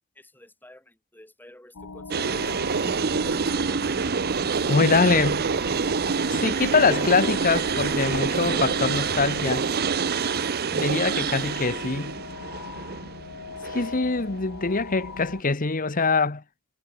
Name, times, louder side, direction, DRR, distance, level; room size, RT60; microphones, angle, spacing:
voice 1, 0.2-4.1, left 1 dB, 10° left, 7.3 m, -51 dB
sound 1, 1.7-15.4, left 4 dB, 90° left, 1.3 m, -40 dB
sound 2, 2.1-14.0, right 5 dB, 45° right, 0.7 m, -26 dB
sound 3, 2.3-9.5, right 2 dB, 65° right, 7.9 m, -42 dB
voice 2, 4.7-5.4 6.3-9.7 10.7-12.2 13.6-16.4, left 4 dB, 40° left, 1.2 m, -23 dB
head